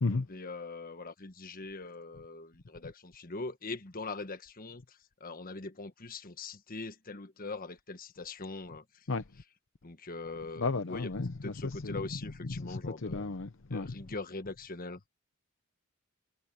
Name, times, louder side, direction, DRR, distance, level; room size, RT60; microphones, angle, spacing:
voice 1, 0.1-8.8 9.8-11.1 11.4-13.3 13.7-15.0, left 3 dB, 45° left, 1.4 m, -42 dB
voice 2, 10.6-12.0 12.4-13.9, left 3 dB, 65° left, 0.8 m, -34 dB
head